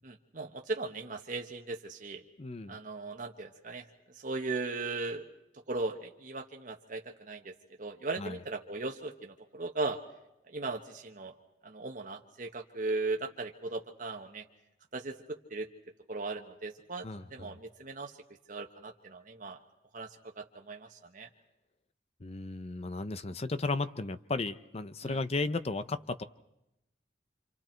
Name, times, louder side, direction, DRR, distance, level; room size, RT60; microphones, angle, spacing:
voice 1, 0.0-2.2 2.7-3.8 4.1-5.2 5.7-7.5 7.8-10.0 10.5-11.3 11.6-14.4 14.9-15.7 16.1-18.1 18.5-19.6 19.9-20.1 20.4-21.3 25.0-25.2, right 3 dB, 50° right, 2 dB, 1.3 m, -37 dB
voice 2, 2.4-2.8 8.2-8.4 17.0-17.5 22.2-26.2, left 3 dB, 35° left, 13 dB, 0.7 m, -35 dB
27.0 x 27.0 x 4.5 m, 0.89 s
head